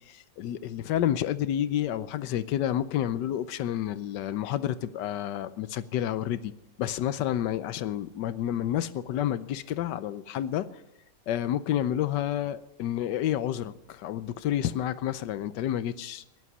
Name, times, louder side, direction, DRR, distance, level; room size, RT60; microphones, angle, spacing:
voice 1, 0.1-6.5 6.8-10.7 11.3-16.2, left 11 dB, 85° left, 15 dB, 1.3 m, -29 dB
16.5 x 11.5 x 6.2 m, 0.92 s
omnidirectional pair, 1.8 m